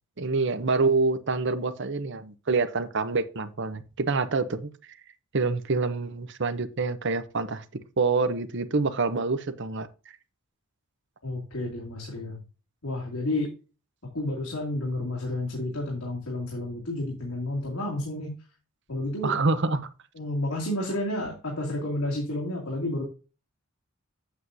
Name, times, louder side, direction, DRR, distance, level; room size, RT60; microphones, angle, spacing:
voice 1, 0.2-4.7 5.3-7.6 8.0-9.9 19.2-19.9, right 3 dB, 55° right, 0.8 m, -26 dB
voice 2, 11.2-12.4 12.8-13.5 14.1-18.4 18.9-19.4 20.1-23.0, left 1 dB, 85° left, 2.6 m, -31 dB
8.3 x 7.9 x 2.7 m
head